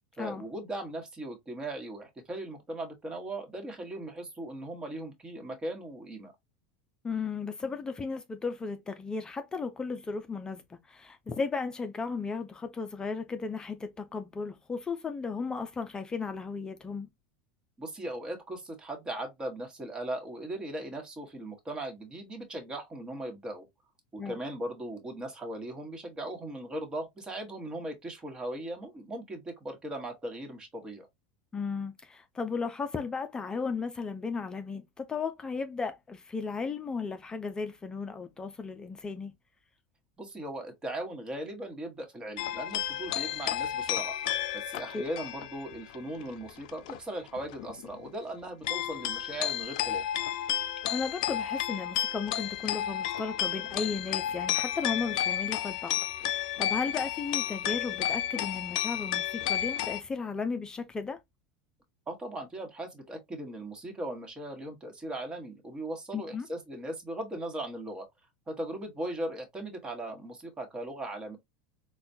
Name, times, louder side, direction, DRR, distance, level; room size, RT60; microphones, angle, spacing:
voice 1, 0.2-6.3 17.8-23.7 24.1-31.1 40.2-44.2 44.5-50.0 62.1-68.1 68.5-71.4, right 1 dB, 20° right, 1.3 m, -38 dB
voice 2, 7.0-17.1 24.2-24.4 31.5-39.3 44.9-45.0 50.9-61.2 66.1-66.5, left 4 dB, 15° left, 0.4 m, -35 dB
sound 1, 42.4-47.0 47.3-48.1 48.6-60.0, left 11 dB, 75° left, 0.4 m, -32 dB
4.1 x 2.2 x 2.6 m
supercardioid pair, 125°, 4 cm